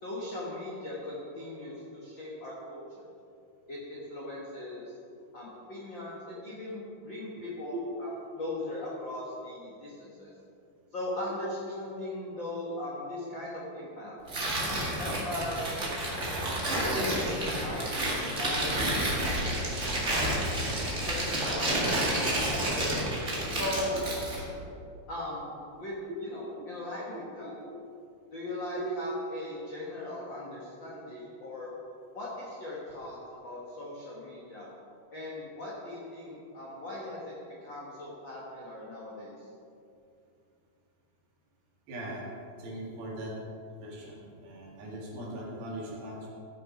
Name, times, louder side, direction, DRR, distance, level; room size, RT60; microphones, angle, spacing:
voice 1, 0.0-3.1 3.7-4.9 5.3-10.3 10.9-14.2 15.0-15.6 16.7-19.8 20.1-20.3 21.1-22.8 23.5-24.0 25.1-25.5 25.8-27.5 28.3-31.7 32.1-34.7 35.1-37.3 37.6-39.3, left 1 dB, 65° left, -5 dB, 1.1 m, -39 dB
Tearing, 14.3-24.5, right 1 dB, 40° right, 1.0 m, -30 dB
voice 2, 41.9-42.2 42.6-43.3 43.8-46.3, right 1 dB, 65° right, -4 dB, 3.8 m, -40 dB
14.5 x 6.5 x 5.0 m, 2.6 s
omnidirectional pair, 4.7 m